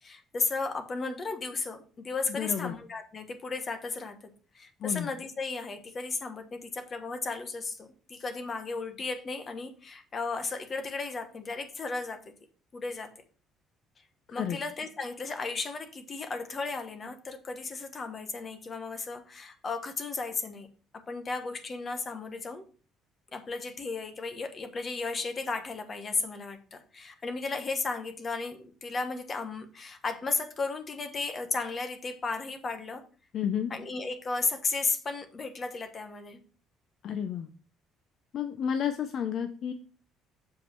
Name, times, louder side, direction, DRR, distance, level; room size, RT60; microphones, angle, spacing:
voice 1, 0.0-4.2 4.5-12.2 12.7-13.1 14.3-20.7 21.1-22.6 23.3-33.0 33.7-36.4, left 4 dB, 25° left, 7 dB, 1.1 m, -34 dB
voice 2, 2.3-2.7 4.8-5.1 14.3-14.6 33.3-33.7 37.0-37.5 38.3-39.7, left 8 dB, 50° left, 8 dB, 0.6 m, -31 dB
7.2 x 5.1 x 4.6 m, 0.39 s
cardioid pair, 155°, 0 cm